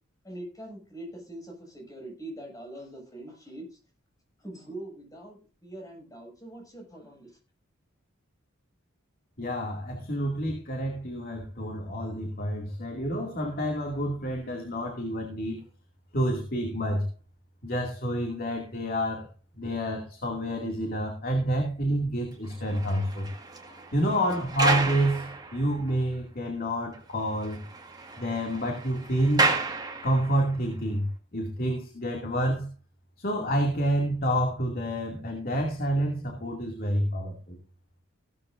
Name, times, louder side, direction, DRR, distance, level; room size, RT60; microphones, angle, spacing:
voice 1, 0.2-3.8 4.4-7.3, right 1 dB, 15° left, 1 dB, 6.7 m, -43 dB
voice 2, 9.4-15.6 16.1-17.1 17.6-19.3 19.6-23.3 23.6-27.6 28.2-29.5 30.0-32.7 33.2-37.6, equal, 45° left, 2 dB, 2.4 m, -28 dB
sound 1, 22.5-25.9 26.5-26.6 26.9-27.0 27.3-30.5, right 3 dB, 20° right, 1.8 m, -31 dB
16.0 x 13.0 x 2.6 m, 0.33 s
head